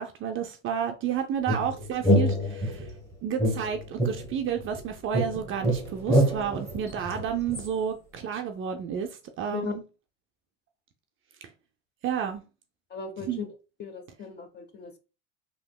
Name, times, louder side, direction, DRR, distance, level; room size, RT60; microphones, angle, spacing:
voice 1, 0.0-2.9 3.2-9.8 12.0-12.4 13.2-13.4, right 8 dB, 35° right, 0.4 m, -31 dB
sound 1, 1.5-2.9 3.4-4.8 5.1-7.7, right 1 dB, 10° left, 1.2 m, -26 dB
voice 2, 12.9-13.5 13.8-15.0, left 6 dB, 25° left, 0.7 m, -36 dB
3.3 x 2.8 x 2.3 m
hypercardioid pair, 90°, 39 cm